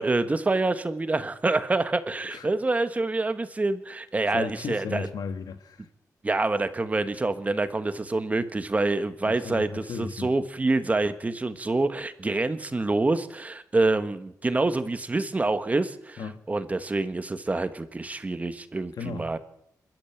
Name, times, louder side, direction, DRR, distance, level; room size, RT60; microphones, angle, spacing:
voice 1, 0.0-5.1 6.2-16.2 16.5-19.4, right 2 dB, 25° right, 1.4 m, -26 dB
voice 2, 4.3-5.9 9.2-10.3 16.2-16.4 19.0-19.4, left 5 dB, 85° left, 2.0 m, -35 dB
27.5 x 12.5 x 8.5 m
wide cardioid pair, 150°, 6 cm